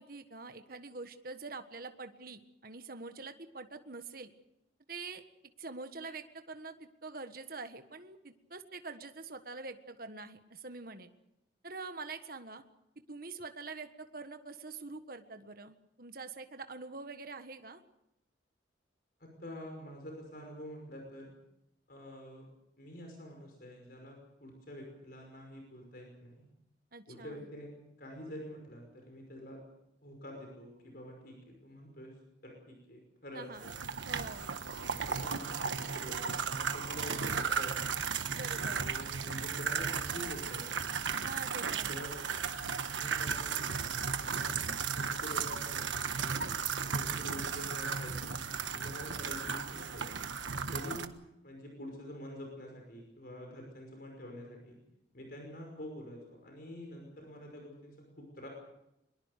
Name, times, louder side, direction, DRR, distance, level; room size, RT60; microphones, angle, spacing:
voice 1, 0.0-4.3 4.9-5.2 5.6-11.1 11.6-12.6 13.1-17.8 26.9-27.5 33.3-33.7 34.0-34.5 38.3-38.9 41.2-42.0, right 3 dB, 50° right, 8 dB, 1.5 m, -45 dB
voice 2, 19.2-21.3 21.9-22.5 22.8-26.5 27.1-27.7 28.0-29.6 30.0-32.1 32.4-33.7 34.6-38.0 38.6-40.8 41.9-42.2 42.5-43.7 44.1-44.6 44.9-46.4 46.9-48.3 48.7-50.3 50.7-51.1 51.4-54.8 55.1-58.5, left 1 dB, 50° left, 2 dB, 5.6 m, -47 dB
sound 1, 33.6-51.1, right 6 dB, 80° right, 1.4 m, -35 dB
23.5 x 22.0 x 6.7 m, 0.86 s
head